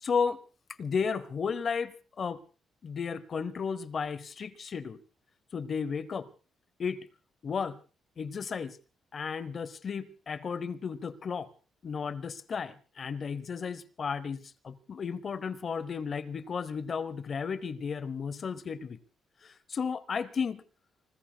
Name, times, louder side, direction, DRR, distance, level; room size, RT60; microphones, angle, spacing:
voice 1, 0.0-0.4 0.8-2.4 2.8-5.0 5.5-6.3 6.8-7.1 7.4-7.8 8.2-8.8 9.1-11.5 11.8-19.0 19.4-20.6, left 6 dB, 40° left, 0.8 m, -33 dB
30.0 x 20.5 x 2.3 m
cardioid pair, 130°, 0 cm